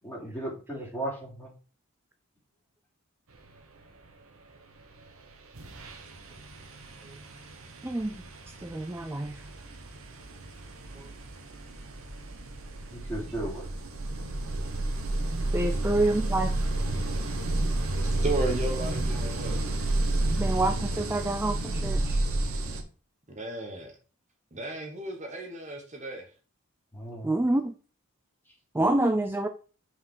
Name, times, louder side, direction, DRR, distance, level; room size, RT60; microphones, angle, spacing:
voice 1, 0.0-1.5 12.9-13.7 26.9-27.4, right 1 dB, 10° left, 3.1 m, -36 dB
sound 1, 5.0-5.2 5.5-22.8, right 2 dB, 70° right, 1.2 m, -31 dB
voice 2, 7.8-8.1 8.6-9.4 11.0-11.1 15.5-16.5 20.4-22.2 27.2-27.7 28.7-29.5, right 2 dB, 10° right, 0.4 m, -27 dB
voice 3, 18.0-19.6 23.3-23.9 24.5-26.3, right 2 dB, 35° right, 1.2 m, -34 dB
5.9 x 4.9 x 4.7 m
head